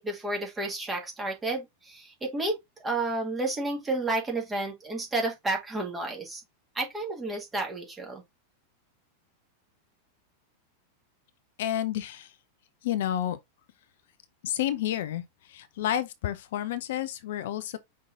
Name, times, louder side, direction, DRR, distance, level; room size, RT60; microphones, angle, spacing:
voice 1, 0.0-6.4 6.7-8.2, right 2 dB, 15° right, 1.6 m, -31 dB
voice 2, 11.6-12.3 12.8-13.4 14.4-17.8, left 11 dB, 55° left, 0.5 m, -30 dB
5.4 x 3.7 x 2.4 m
figure-of-eight pair, 90°, 0 cm